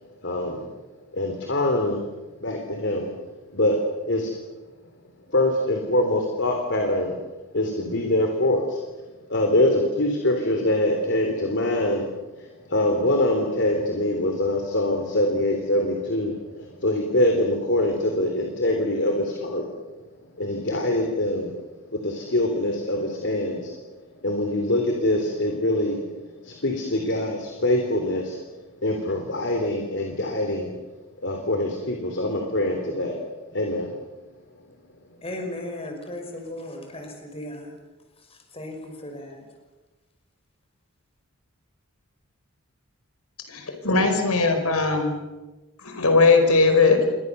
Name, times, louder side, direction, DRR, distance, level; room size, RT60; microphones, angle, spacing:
voice 1, 0.2-0.6 1.1-2.0 2.4-3.1 3.5-3.8 4.1-4.3 5.3-7.1 7.5-8.8 9.3-12.0 12.7-19.7 20.4-21.5 22.0-23.7 24.2-26.0 26.4-28.4 28.8-30.7 31.2-33.1 33.5-33.9, left 1 dB, 55° left, 3 dB, 3.5 m, -24 dB
voice 2, 35.2-37.8 38.3-39.4, left 1 dB, 25° left, 3 dB, 5.5 m, -36 dB
voice 3, 43.5-45.2 45.8-47.0, left 4 dB, 75° left, 6 dB, 4.7 m, -19 dB
28.5 x 24.0 x 6.9 m, 1.2 s
head